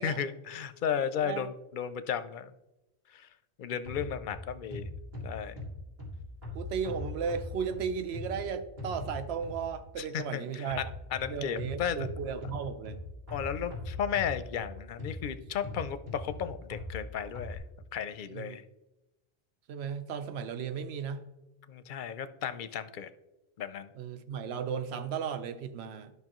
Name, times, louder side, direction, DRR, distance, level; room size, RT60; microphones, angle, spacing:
voice 1, 0.0-2.5 3.1-3.3 3.6-4.9 5.2-5.6 10.0-12.1 13.3-17.6 17.9-18.6 21.7-23.1 23.6-23.9, left 8 dB, 60° left, 12 dB, 0.6 m, -34 dB
sound 1, 3.8-9.9 10.7-17.6, left 2 dB, 70° right, 2.2 m, -41 dB
voice 2, 6.5-10.8 11.3-13.0 18.3-18.6 19.7-21.2 23.9-26.1, right 6 dB, 90° right, 10 dB, 0.9 m, -35 dB
11.0 x 5.5 x 3.0 m, 0.98 s
omnidirectional pair, 1.0 m